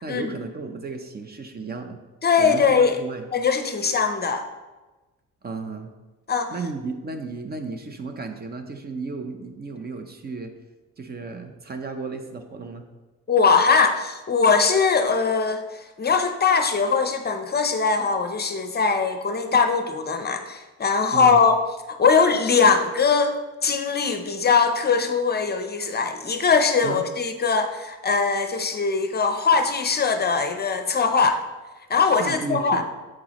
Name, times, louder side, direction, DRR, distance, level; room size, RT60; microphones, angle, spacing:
voice 1, 0.0-2.0 2.4-3.3 5.4-5.9 6.5-10.5 11.0-12.8 21.1-21.4 26.8-27.0 32.2-32.8, right 4 dB, 30° right, 6 dB, 0.7 m, -33 dB
voice 2, 2.2-3.0 3.3-4.4 6.3-6.5 13.3-15.6 16.0-21.5 21.9-31.4 31.9-32.8, left 5 dB, 35° left, 7 dB, 0.6 m, -21 dB
7.6 x 6.0 x 3.0 m, 1.2 s
cardioid pair, 90°, 30 cm